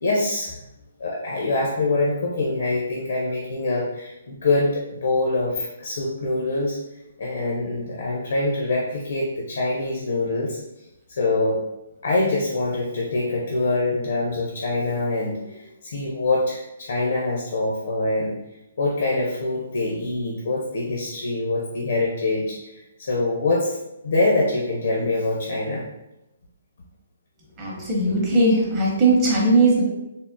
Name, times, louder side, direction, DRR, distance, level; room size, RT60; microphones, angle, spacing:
voice 1, 0.0-0.5 1.0-6.8 7.2-10.6 11.1-11.6 12.0-18.3 18.8-23.8 24.0-25.8, left 2 dB, 70° left, -2 dB, 0.5 m, -24 dB
voice 2, 27.6-29.8, right 2 dB, 30° right, -3 dB, 0.7 m, -19 dB
3.5 x 2.0 x 2.5 m, 0.93 s
hypercardioid pair, 150°, 0 cm